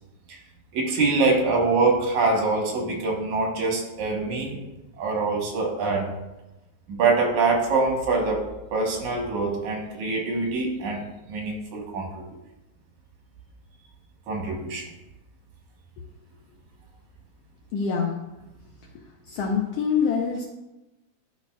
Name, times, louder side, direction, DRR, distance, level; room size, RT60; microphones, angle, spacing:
voice 1, 0.7-4.6 5.0-6.1 6.9-12.2 14.3-14.9, right 3 dB, 80° right, 0 dB, 2.6 m, -24 dB
voice 2, 17.7-18.1 19.3-20.4, left 6 dB, 75° left, 0 dB, 1.4 m, -25 dB
12.0 x 4.5 x 2.3 m, 1.0 s
omnidirectional pair, 3.4 m